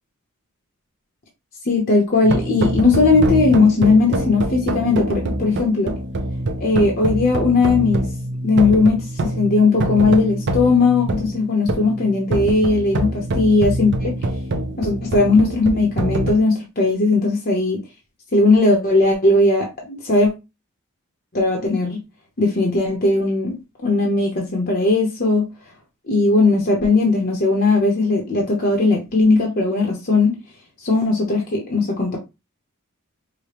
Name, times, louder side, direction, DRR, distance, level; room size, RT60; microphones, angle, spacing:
voice 1, 1.6-5.9 6.6-8.0 8.4-14.2 14.8-17.8 18.3-20.3 21.3-22.0 22.4-23.5 23.8-25.5 26.1-30.4 30.8-32.2, left 3 dB, 45° left, 0.9 m, -18 dB
sound 1, 2.2-16.3, right 1 dB, 55° right, 0.6 m, -25 dB
5.0 x 2.2 x 2.9 m
head